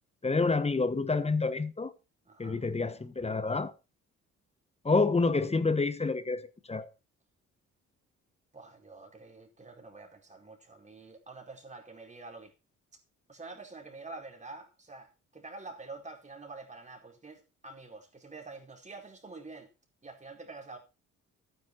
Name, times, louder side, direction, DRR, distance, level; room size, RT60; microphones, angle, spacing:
voice 1, 0.2-1.9 2.4-3.7 4.8-6.9, left 3 dB, 20° left, 1.2 m, -28 dB
voice 2, 2.2-2.6 8.5-12.5 13.3-19.7 20.0-20.8, right 3 dB, 25° right, 4.5 m, -47 dB
12.0 x 10.0 x 4.5 m
cardioid pair, 90°, 30 cm